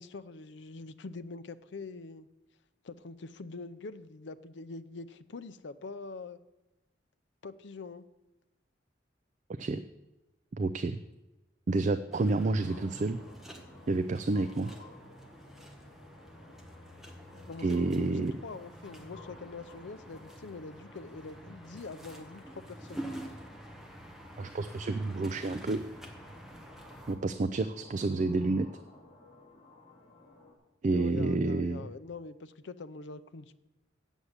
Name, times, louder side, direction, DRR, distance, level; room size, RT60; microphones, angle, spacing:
voice 1, 0.0-2.3 2.8-6.4 7.4-8.0 17.5-23.0 30.9-33.5, left 3 dB, 65° left, 13 dB, 0.5 m, -44 dB
voice 2, 10.5-11.0 11.7-13.2 13.9-14.7 17.6-18.3 24.4-25.9 27.1-28.7 30.8-31.8, right 3 dB, 40° right, 10 dB, 0.4 m, -29 dB
sound 1, 12.1-27.2, right 1 dB, ahead, 1.1 m, -48 dB
sound 2, 12.5-30.5, left 2 dB, 30° left, 2.2 m, -56 dB
8.1 x 7.2 x 8.0 m, 1.0 s
head